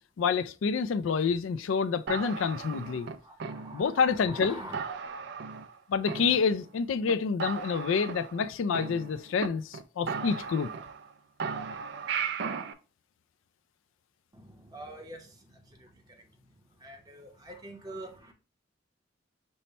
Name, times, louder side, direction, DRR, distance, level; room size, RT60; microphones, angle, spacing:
voice 1, 0.2-3.1 3.7-4.6 5.9-10.7, left 5 dB, 90° left, 0.4 m, -28 dB
sound 1, 2.1-4.0 4.4-4.5 4.7-5.8 6.1-6.8 7.1-7.2 7.4-9.5 9.7-9.8 10.1-11.1 11.4-12.7, right 6 dB, 60° right, 0.4 m, -36 dB
voice 2, 3.0-4.8 14.3-16.0 16.8-18.3, right 1 dB, 20° right, 0.8 m, -45 dB
5.5 x 2.2 x 4.0 m
head